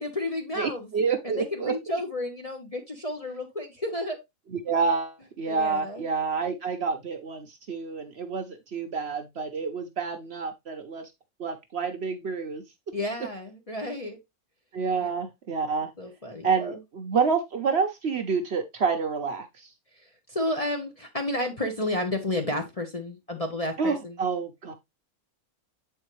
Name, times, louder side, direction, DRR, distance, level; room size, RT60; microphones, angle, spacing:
voice 1, 0.0-0.9 1.2-4.2 5.5-6.0 12.9-14.2 15.0-15.1 16.0-16.8 20.0-24.2, left 1 dB, 30° left, 0.8 m, -31 dB
voice 2, 0.5-1.7 4.5-11.1 11.4-12.6 14.7-15.9 16.4-19.7 23.8-24.7, right 5 dB, 55° right, 0.9 m, -28 dB
7.6 x 4.5 x 3.1 m
omnidirectional pair, 1.5 m